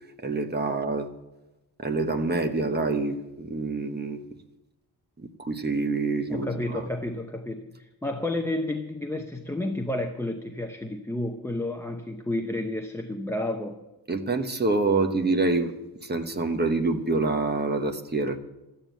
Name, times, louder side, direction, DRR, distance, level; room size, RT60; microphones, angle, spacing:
voice 1, 0.2-1.1 1.8-4.2 5.2-6.5 6.7-6.8 14.1-15.8 16.0-18.4, right 3 dB, 25° right, 1.0 m, -26 dB
voice 2, 6.3-13.8, left 1 dB, 5° left, 0.6 m, -31 dB
13.0 x 9.1 x 9.2 m
wide cardioid pair, 180°, 41 cm